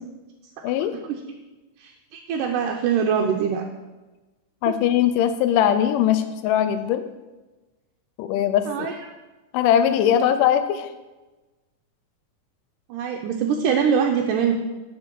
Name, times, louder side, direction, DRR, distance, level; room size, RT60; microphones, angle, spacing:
voice 1, 1.8-3.7 8.7-9.1 12.9-14.5, right 7 dB, 80° right, 1 dB, 2.2 m, -23 dB
voice 2, 4.6-7.0 8.2-8.9 9.5-10.9, left 10 dB, 85° left, 10 dB, 2.1 m, -20 dB
11.0 x 5.0 x 4.5 m, 1.2 s
omnidirectional pair, 3.7 m